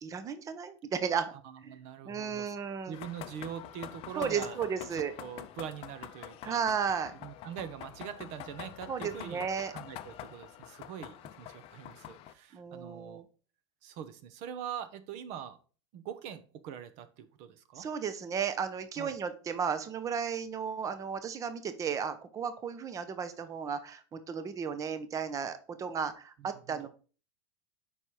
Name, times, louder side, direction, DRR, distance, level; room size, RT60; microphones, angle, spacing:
voice 1, 0.0-1.3 1.6-1.8 2.0-2.9 4.1-5.1 6.4-7.1 8.9-9.7 12.5-13.2 17.8-26.9, right 6 dB, 20° right, 11 dB, 0.7 m, -34 dB
voice 2, 1.4-2.5 2.9-4.6 4.9-6.6 7.2-9.5 9.7-13.2 13.8-15.6 15.9-17.9 19.0-19.2 26.4-26.9, right 9 dB, 50° right, 11 dB, 0.9 m, -43 dB
sound 1, 2.9-12.3, left 12 dB, 40° left, 0.5 m, -46 dB
5.5 x 4.3 x 4.6 m, 0.37 s
supercardioid pair, 130°, 15 cm